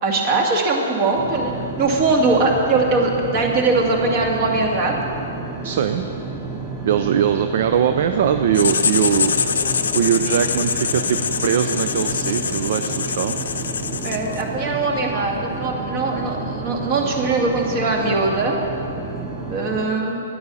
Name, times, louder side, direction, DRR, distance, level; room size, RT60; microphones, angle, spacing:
voice 1, 0.0-5.0 14.0-18.6 19.5-20.2, right 3 dB, 40° right, 1 dB, 2.1 m, -21 dB
sound 1, 1.1-19.9, right 3 dB, 15° right, 1.5 m, -31 dB
voice 2, 5.6-6.1 6.9-9.3 9.9-13.4, right 8 dB, 60° right, 8 dB, 0.5 m, -21 dB
Writing, 8.5-14.5, left 6 dB, 85° left, 0.7 m, -24 dB
10.0 x 9.5 x 6.9 m, 2.7 s
hypercardioid pair, 140°, 0 cm